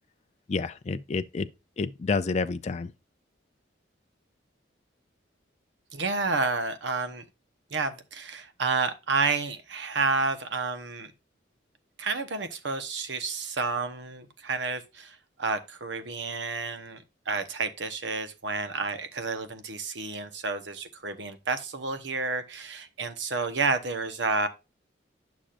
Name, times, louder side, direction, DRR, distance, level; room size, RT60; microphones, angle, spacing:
voice 1, 0.5-1.5 1.8-2.9, left 4 dB, 35° left, 0.4 m, -29 dB
voice 2, 5.9-7.2 7.7-11.1 12.0-24.5, right 4 dB, 65° right, 1.0 m, -30 dB
10.0 x 6.1 x 2.5 m
head